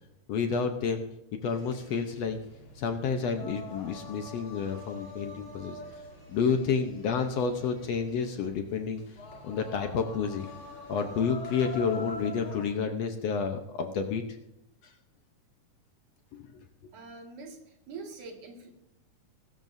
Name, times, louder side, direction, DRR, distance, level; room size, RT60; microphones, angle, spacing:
voice 1, 0.3-1.0 1.4-2.4 2.8-5.8 6.3-9.0 9.4-10.5 10.9-14.2 16.5-16.6, left 6 dB, 70° left, 5 dB, 1.6 m, -30 dB
sound 1, 1.4-12.7, left 2 dB, 40° left, 2.9 m, -45 dB
voice 2, 16.9-18.7, right 4 dB, 65° right, 1 dB, 3.4 m, -44 dB
21.5 x 13.0 x 2.7 m, 0.88 s
omnidirectional pair, 4.0 m